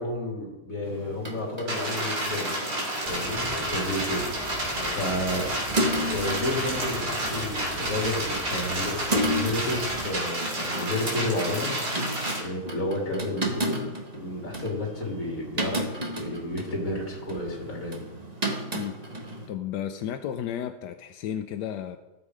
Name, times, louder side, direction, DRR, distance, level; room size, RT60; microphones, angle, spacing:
voice 1, 0.0-2.5 3.0-4.6 4.9-5.5 6.0-12.0 12.4-18.0, left 1 dB, 55° left, 3.4 m, -31 dB
sound 1, 0.8-19.5, equal, 25° right, 1.3 m, -34 dB
sound 2, 1.7-12.4, right 1 dB, 80° right, 3.7 m, -30 dB
Walk footsteps, 3.1-10.1, right 1 dB, 10° right, 1.9 m, -41 dB
voice 2, 18.7-19.0 19.5-22.0, left 10 dB, 85° left, 1.3 m, -33 dB
15.0 x 7.6 x 4.9 m
omnidirectional pair, 1.8 m